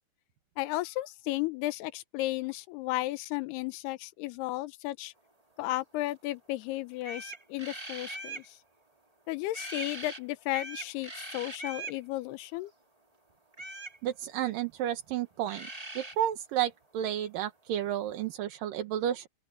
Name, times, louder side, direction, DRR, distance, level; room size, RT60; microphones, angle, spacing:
voice 1, 0.6-5.1 5.6-8.6 9.3-12.7, left 17 dB, 80° left, 2.9 m, -34 dB
sound 1, 6.6-6.7 7.0-8.5 9.5-10.2 10.5-12.0 13.5-14.0 15.2-15.3 15.5-16.1, right 2 dB, 15° right, 1.1 m, -41 dB
voice 2, 14.0-15.7 16.0-19.3, right 11 dB, 65° right, 2.6 m, -31 dB
open air
omnidirectional pair, 4.7 m